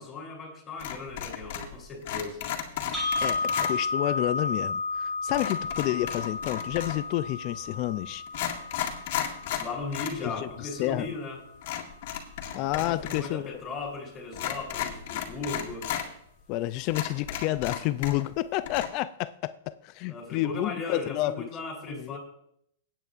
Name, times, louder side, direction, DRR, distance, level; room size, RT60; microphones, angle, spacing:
voice 1, 0.0-2.4 9.6-11.4 12.6-15.9 20.1-22.2, left 3 dB, 20° left, 3.3 m, -37 dB
sound 1, 0.8-1.8 2.0-3.7 5.3-7.1 7.8-7.9 8.3-10.2 10.5-10.6 11.6-13.3 13.5-13.6 14.3-16.1 16.5-16.6 16.9-18.4 18.6-18.9, left 10 dB, 55° left, 2.0 m, -34 dB
sound 2, 2.9-11.0, left 3 dB, 15° right, 1.9 m, -33 dB
voice 2, 3.2-8.2 10.2-11.1 12.5-13.6 16.5-21.5 21.9-22.2, left 15 dB, 35° left, 0.4 m, -30 dB
22.5 x 8.9 x 2.5 m
hypercardioid pair, 150°, 0 cm